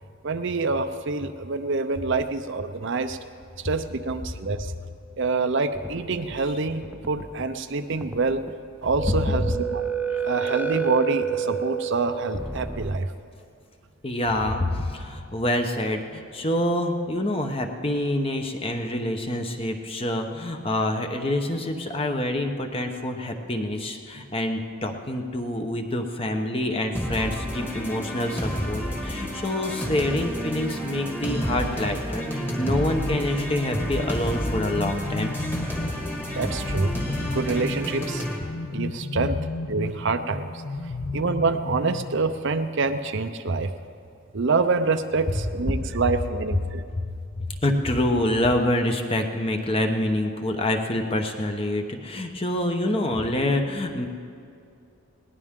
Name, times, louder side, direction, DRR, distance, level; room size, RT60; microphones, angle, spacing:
voice 1, 0.2-3.2 3.6-4.7 5.2-8.4 8.8-9.8 10.2-13.1 36.3-36.9 37.2-38.2 38.7-39.4 39.7-40.5 41.1-43.7 44.3-46.8, right 3 dB, 55° right, 9 dB, 0.6 m, -26 dB
sound 1, 5.7-6.5 6.8-7.6 7.9-8.6 9.0-13.0, right 6 dB, 5° right, 0.4 m, -30 dB
voice 2, 14.0-35.3 47.4-54.1, left 1 dB, 25° left, 4 dB, 1.0 m, -26 dB
sound 2, 26.9-38.4, equal, 10° left, 1.6 m, -30 dB
sound 3, 32.3-42.6, left 2 dB, 60° left, 0.6 m, -34 dB
20.0 x 18.5 x 3.7 m, 2.5 s
head